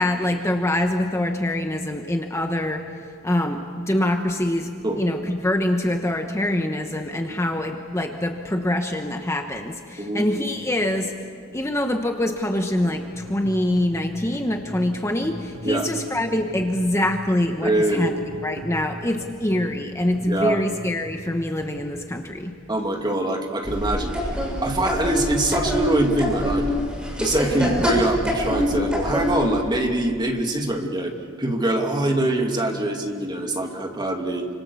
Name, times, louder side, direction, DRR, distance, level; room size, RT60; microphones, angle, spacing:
voice 1, 0.0-2.8 3.2-4.7 5.0-11.1 11.5-18.1 18.4-22.5, left 1 dB, 15° left, 4 dB, 1.2 m, -24 dB
sound 1, 13.1-17.2 18.0-19.6 20.1-21.7, equal, 85° right, 3.7 m, -41 dB
voice 2, 17.6-18.1 20.3-20.6 22.7-24.1 24.6-26.7 27.2-31.1 31.4-34.5, right 1 dB, 20° right, 2 dB, 2.5 m, -23 dB
sound 2, 23.6-29.6, left 1 dB, 5° right, 6.8 m, -25 dB
29.5 x 26.0 x 7.1 m, 2.2 s
head